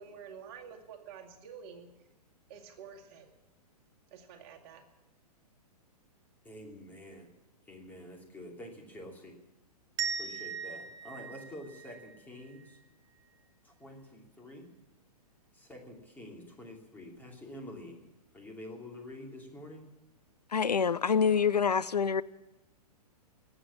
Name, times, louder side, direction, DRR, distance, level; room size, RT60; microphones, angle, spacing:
voice 1, 0.0-1.9 2.5-3.3 4.1-4.8, right 7 dB, 40° right, 2.3 m, -49 dB
voice 2, 6.4-7.3 7.6-9.4 10.2-12.8 13.6-14.7 15.5-18.1 18.3-19.9, left 1 dB, 10° left, 2.9 m, -47 dB
sound 1, 10.0-12.8, right 6 dB, 20° right, 1.0 m, -39 dB
voice 3, 20.5-22.2, left 6 dB, 85° left, 0.5 m, -26 dB
20.5 x 8.3 x 8.6 m
figure-of-eight pair, 115°, 20 cm